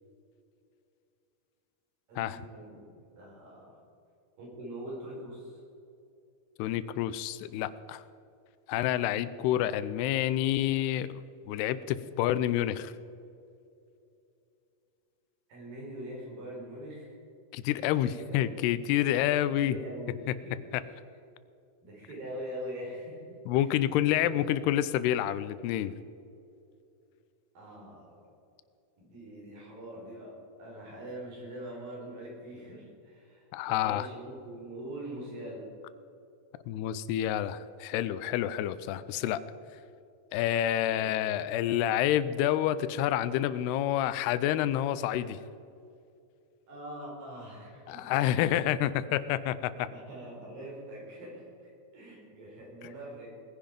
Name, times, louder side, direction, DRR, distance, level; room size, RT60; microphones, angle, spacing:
voice 1, 2.1-3.8 4.4-5.6 15.5-17.1 18.0-18.5 19.6-20.6 20.8-20.9 21.8-23.8 24.3-24.4 27.5-28.2 29.0-35.7 40.8-41.1 46.7-48.2 49.8-51.5 51.9-53.3, right 1 dB, 60° right, -3 dB, 6.0 m, -43 dB
voice 2, 6.6-8.0 8.7-11.2 11.5-12.9 17.5-19.8 20.7-20.8 23.5-25.9 33.5-34.1 36.7-39.4 40.3-45.4 47.9-49.9, left 12 dB, 90° left, 15 dB, 2.7 m, -28 dB
19.5 x 10.5 x 5.2 m, 2.6 s
omnidirectional pair, 4.6 m